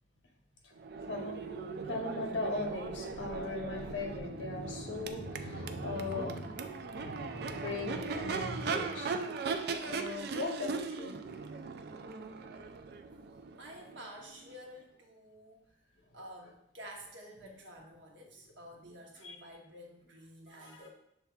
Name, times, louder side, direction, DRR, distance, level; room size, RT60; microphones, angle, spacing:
Crowd / Race car auto racing / Accelerating revving vroom, 0.8-14.6, right 4 dB, 60° right, 0.3 m, -39 dB
voice 1, 1.9-9.2 9.8-11.1 19.2-19.4 20.6-20.8, left 3 dB, 80° left, 1 dB, 0.9 m, -39 dB
voice 2, 13.6-15.7 16.1-20.9, equal, 85° right, 0 dB, 1.0 m, -50 dB
6.9 x 3.3 x 2.3 m, 0.76 s
head